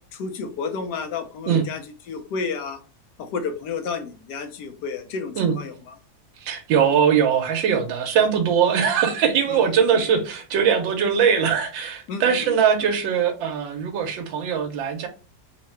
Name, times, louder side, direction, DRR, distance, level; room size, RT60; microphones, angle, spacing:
voice 1, 0.1-2.8 3.2-5.7 8.7-8.8 9.5-9.7 12.1-12.5 12.8-12.9, left 5 dB, 70° left, 1.1 m, -31 dB
voice 2, 6.4-15.1, right 7 dB, 85° right, 1.4 m, -21 dB
3.7 x 2.1 x 4.3 m
omnidirectional pair, 2.1 m